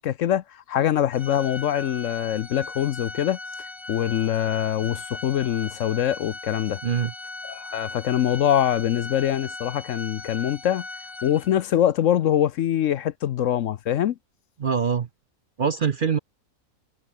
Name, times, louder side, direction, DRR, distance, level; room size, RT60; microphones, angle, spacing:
voice 1, 0.0-3.4 3.9-6.8 7.4-10.8 11.2-14.2, left 11 dB, 65° left, 1.0 m, -24 dB
Organ, 1.1-11.8, left 2 dB, 20° left, 1.5 m, -38 dB
voice 2, 6.8-7.1 14.6-15.1 15.6-16.2, right 7 dB, 50° right, 0.7 m, -23 dB
omnidirectional pair, 1.5 m